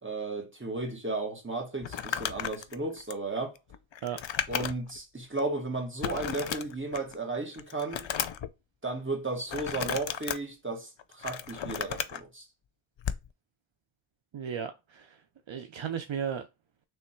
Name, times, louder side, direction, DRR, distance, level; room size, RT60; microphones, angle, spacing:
voice 1, 0.0-3.5 4.5-8.1 8.8-12.4, right 2 dB, 25° right, 1.4 m, -34 dB
Crumpling crinkling, 1.8-5.0 5.4-5.5 6.0-7.1 7.5-8.5 9.5-10.4 11.0-12.2 13.0-13.3, left 8 dB, 65° left, 0.5 m, -34 dB
voice 2, 14.3-15.2 15.5-16.5, right 8 dB, 70° right, 0.6 m, -35 dB
3.4 x 3.1 x 4.3 m
wide cardioid pair, 50°, 49 cm